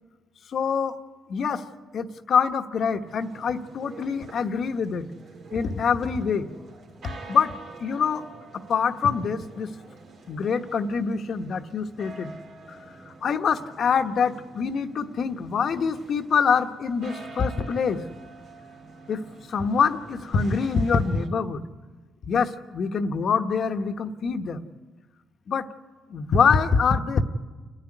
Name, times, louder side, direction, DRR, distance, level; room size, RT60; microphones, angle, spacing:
voice 1, 0.5-0.9 1.3-1.6 1.9-5.1 5.5-6.5 7.3-7.5 7.8-8.2 8.7-9.7 10.3-12.3 12.7-12.8 13.2-18.0 19.1-19.2 19.5-21.6 22.2-24.6 25.5-25.7 26.1-27.2, left 6 dB, 55° left, 7 dB, 1.2 m, -25 dB
sound 1, 3.1-21.3, right 3 dB, 65° right, 2.9 m, -47 dB
29.0 x 10.0 x 9.9 m, 1.3 s
cardioid pair, 90°, 0 cm